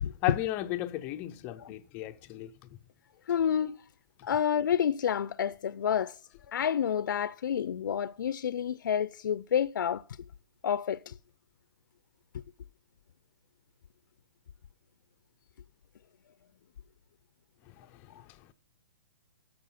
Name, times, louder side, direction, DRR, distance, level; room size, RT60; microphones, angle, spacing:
voice 1, 0.2-2.5, left 14 dB, 15° left, 0.4 m, -34 dB
voice 2, 3.3-3.8 4.2-6.1 6.5-10.0 10.6-11.1, left 8 dB, 70° left, 0.4 m, -29 dB
13.0 x 6.3 x 5.7 m
hypercardioid pair, 165°, 11 cm